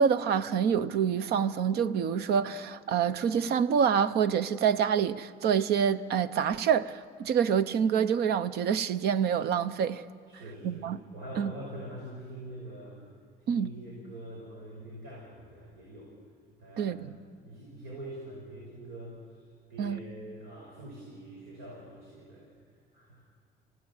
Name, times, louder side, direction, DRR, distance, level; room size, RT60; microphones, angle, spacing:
voice 1, 0.0-10.0 10.6-11.0 11.4-11.5 13.5-13.7 16.8-17.1 19.8-20.0, right 7 dB, 70° right, 0.8 m, -26 dB
voice 2, 10.3-10.9 11.1-13.1 13.4-16.1 16.6-16.9 17.2-22.5 22.9-23.2, right 1 dB, 90° right, 5.4 m, -44 dB
27.0 x 16.5 x 7.9 m
cardioid pair, 110°, 17 cm